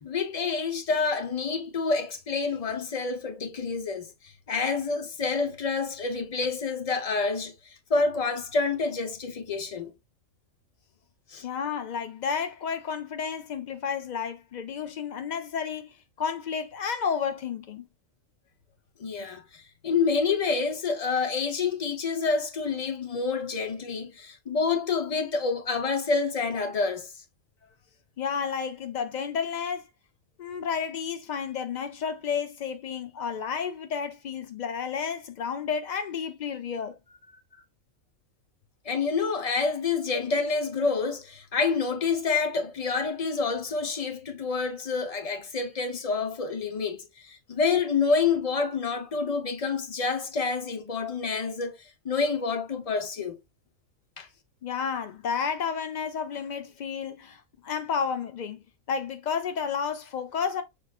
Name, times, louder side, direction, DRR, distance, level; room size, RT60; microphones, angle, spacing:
voice 1, 0.0-9.9 11.3-11.5 19.0-27.1 38.8-53.4 54.2-54.3, left 4 dB, 40° left, 0.6 m, -28 dB
voice 2, 11.4-17.9 28.2-29.9 30.4-37.0 54.6-60.6, left 6 dB, 80° left, 0.4 m, -31 dB
6.1 x 3.1 x 2.3 m
omnidirectional pair, 1.4 m